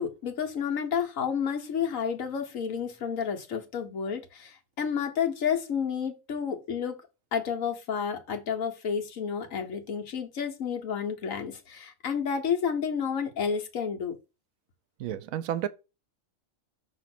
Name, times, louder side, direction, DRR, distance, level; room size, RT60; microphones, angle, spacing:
voice 1, 0.0-6.9 7.3-14.1, left 7 dB, 70° left, 1.4 m, -30 dB
voice 2, 15.0-15.7, right 10 dB, 75° right, 1.0 m, -31 dB
6.2 x 3.2 x 5.8 m
omnidirectional pair, 1.5 m